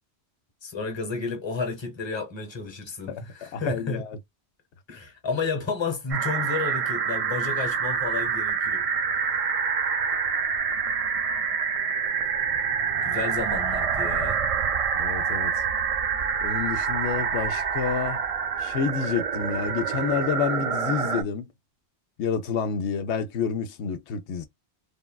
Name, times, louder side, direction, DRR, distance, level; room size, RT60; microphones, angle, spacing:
voice 1, 0.6-4.0 4.9-8.8 9.1-9.3 13.0-14.4, left 4 dB, 25° left, 0.9 m, -31 dB
voice 2, 3.1-4.2 15.0-15.6 16.4-18.2 18.6-21.5 22.2-24.5, left 6 dB, 90° left, 0.9 m, -29 dB
sound 1, 6.1-21.2, right 6 dB, 60° right, 0.3 m, -27 dB
3.3 x 2.2 x 2.2 m
omnidirectional pair, 1.1 m